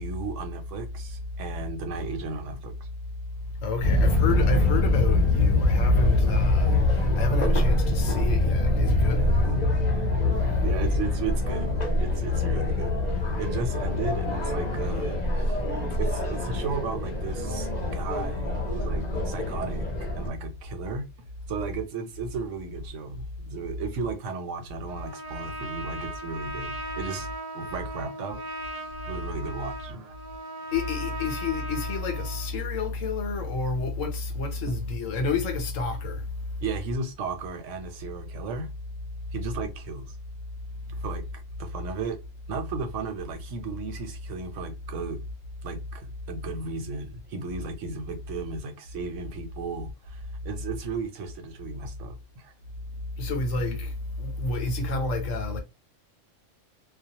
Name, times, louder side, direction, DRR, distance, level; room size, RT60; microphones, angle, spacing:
voice 1, 0.0-2.7 9.2-9.6 10.6-15.6 15.9-19.8 20.1-21.1 21.5-27.3 27.5-28.4 28.8-30.1 36.6-38.7 39.3-40.2 40.9-41.2 41.6-42.2 42.5-45.2 45.6-52.5, right 4 dB, 75° right, 1.0 m, -35 dB
voice 2, 3.6-9.3 10.3-10.6 30.7-36.3 53.1-55.6, left 3 dB, 85° left, 1.0 m, -29 dB
sound 1, 3.8-20.3, left 2 dB, 40° left, 0.7 m, -24 dB
Trumpet, 24.9-32.5, right 1 dB, 50° right, 0.4 m, -38 dB
2.3 x 2.1 x 2.7 m
omnidirectional pair, 1.3 m